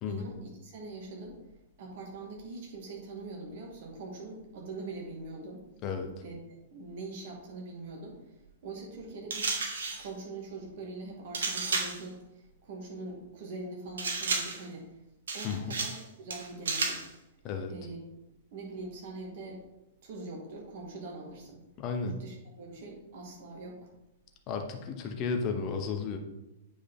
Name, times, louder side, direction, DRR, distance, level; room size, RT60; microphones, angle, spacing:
voice 1, 0.1-1.4 1.8-5.6 6.2-8.2 8.6-9.5 10.0-14.9 15.3-17.1 17.7-18.2 18.5-19.6 20.0-21.6 22.0-23.9, right 2 dB, 50° right, -1 dB, 2.2 m, -43 dB
sound 1, 9.3-10.1 11.3-12.0 14.0-14.7 15.3-16.0 16.3-17.1, right 4 dB, 70° right, 1.2 m, -32 dB
voice 2, 15.4-15.8 17.4-17.7 21.8-22.1 24.5-26.2, left 5 dB, 35° left, 4 dB, 1.1 m, -33 dB
8.8 x 4.9 x 3.7 m, 0.95 s
figure-of-eight pair, 100°, 0 cm